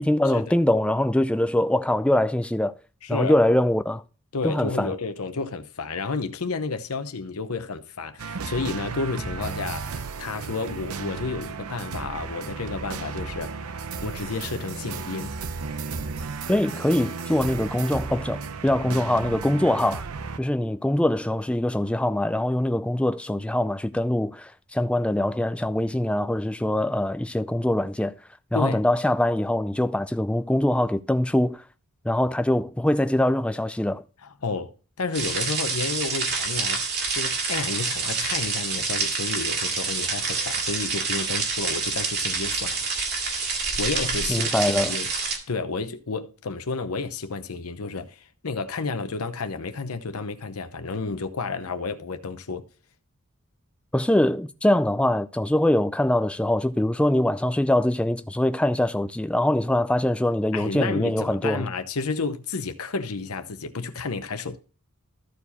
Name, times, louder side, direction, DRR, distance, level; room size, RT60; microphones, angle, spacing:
voice 1, 0.0-2.7 3.1-4.0 4.4-5.0 16.5-20.1 20.4-28.1 28.5-31.6 32.0-34.0 44.3-44.9 53.9-61.7, left 1 dB, 5° left, 0.4 m, -23 dB
voice 2, 3.0-3.4 4.3-13.6 14.0-15.3 28.5-28.8 34.2-36.8 37.1-42.8 43.8-45.1 45.5-52.6 60.5-64.6, left 4 dB, 90° left, 0.8 m, -31 dB
sound 1, 8.2-20.4, right 5 dB, 90° right, 0.7 m, -34 dB
sound 2, 35.1-45.4, right 4 dB, 50° right, 2.1 m, -27 dB
13.5 x 4.8 x 4.1 m
head